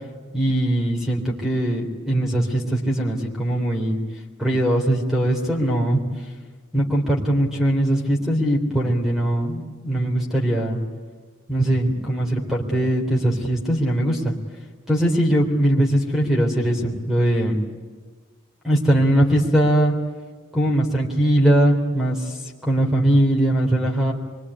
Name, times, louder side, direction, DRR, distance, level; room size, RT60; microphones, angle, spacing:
voice 1, 0.3-4.0 4.4-6.0 6.7-10.8 11.5-14.3 14.9-17.6 18.6-19.9 20.5-24.1, right 1 dB, ahead, 0 dB, 3.5 m, -20 dB
26.0 x 23.5 x 9.9 m, 1.4 s
head